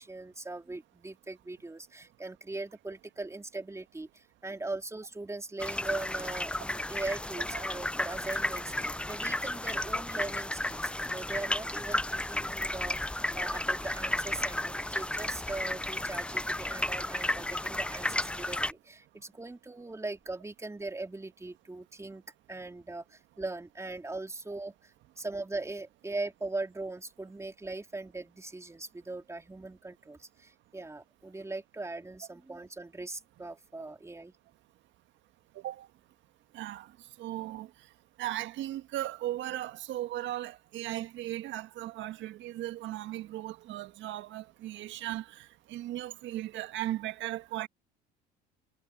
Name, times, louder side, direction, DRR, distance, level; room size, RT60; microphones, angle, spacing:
voice 1, 0.0-22.2 22.5-34.3, right 2 dB, 15° right, 3.9 m, -40 dB
sound 1, 5.6-18.7, left 1 dB, 5° left, 0.6 m, -33 dB
voice 2, 35.6-35.9 36.5-36.9 37.2-37.7 38.2-47.7, right 14 dB, 60° right, 1.8 m, -37 dB
hypercardioid pair, 70°, 21 cm